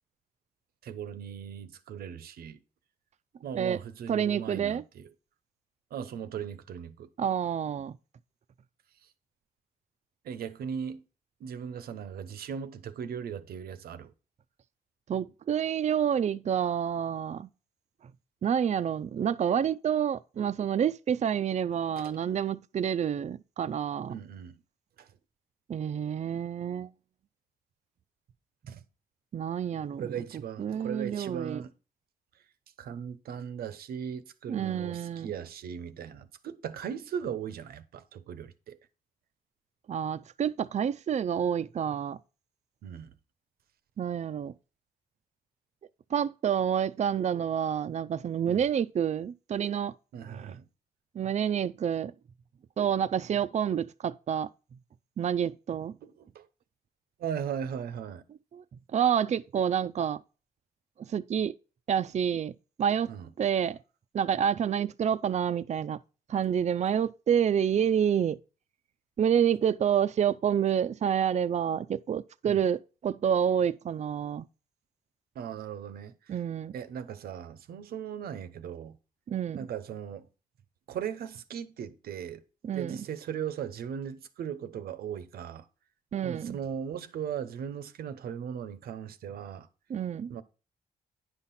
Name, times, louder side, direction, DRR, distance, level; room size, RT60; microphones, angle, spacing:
voice 1, 0.8-2.6 3.4-5.1 5.9-7.1 10.2-11.1 11.4-14.1 21.9-22.2 24.1-24.6 25.0-25.1 28.7-28.8 30.0-31.7 32.8-38.8 42.8-43.1 48.5-48.7 50.1-50.6 56.0-56.5 57.2-58.2 63.1-63.3 72.5-72.6 75.3-76.4 76.7-79.0 79.5-80.3 80.9-82.4 82.7-85.7 86.2-89.7 90.3-90.4, right 8 dB, 85° right, 0.8 m, -38 dB
voice 2, 4.1-4.8 7.2-8.0 15.1-17.5 18.4-24.2 25.7-26.9 29.3-30.1 30.6-31.6 34.5-35.3 39.9-42.2 44.0-44.5 46.1-49.9 50.2-50.6 51.1-52.1 52.8-54.5 55.2-55.9 58.5-58.6 58.9-60.2 61.1-61.5 61.9-63.1 63.4-63.8 64.1-66.0 66.3-68.4 69.2-74.4 76.3-76.7 79.3-79.7 82.6-83.0 86.1-86.6 89.9-90.3, right 8 dB, 50° right, 0.5 m, -28 dB
9.7 x 5.8 x 4.2 m
cardioid pair, 70°, 15 cm